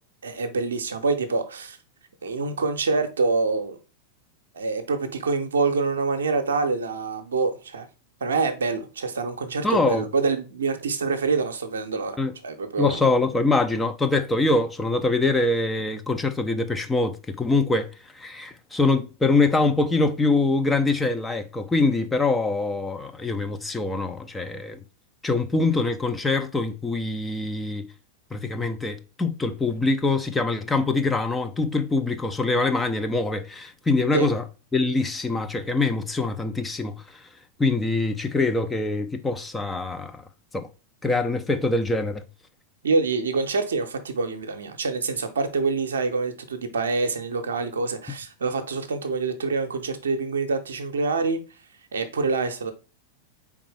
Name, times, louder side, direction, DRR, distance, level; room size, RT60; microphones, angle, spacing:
voice 1, 0.2-1.8 2.2-3.8 4.5-7.9 8.2-12.2 12.4-13.1 34.1-34.3 42.8-51.4 51.9-52.7, right 4 dB, 70° right, 0.7 m, -26 dB
voice 2, 9.6-10.0 12.2-12.4 12.8-17.9 18.1-24.8 25.2-27.9 28.3-34.4 34.7-37.3 37.6-40.2 40.5-40.7 41.0-42.2, left 3 dB, 10° left, 0.5 m, -24 dB
4.5 x 3.5 x 3.2 m
figure-of-eight pair, 90°, 0 cm